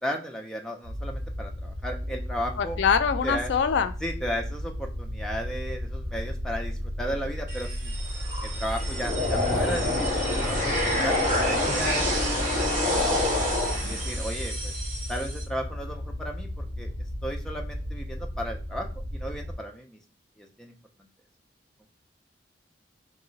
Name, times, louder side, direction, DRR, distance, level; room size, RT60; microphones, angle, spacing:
voice 1, 0.0-2.8 3.2-3.5 4.0-7.9 8.4-13.2 13.9-14.7 15.1-16.9 17.2-18.9 19.1-20.0 20.4-20.7, equal, 5° left, 1 dB, 0.4 m, -35 dB
sound 1, 0.8-19.6, equal, 70° right, 0.7 m, -34 dB
voice 2, 2.6-3.9, left 6 dB, 70° left, 10 dB, 0.3 m, -24 dB
sound 2, 7.5-15.4, left 1 dB, 45° right, 1.5 m, -27 dB
3.2 x 2.8 x 3.9 m, 0.36 s
head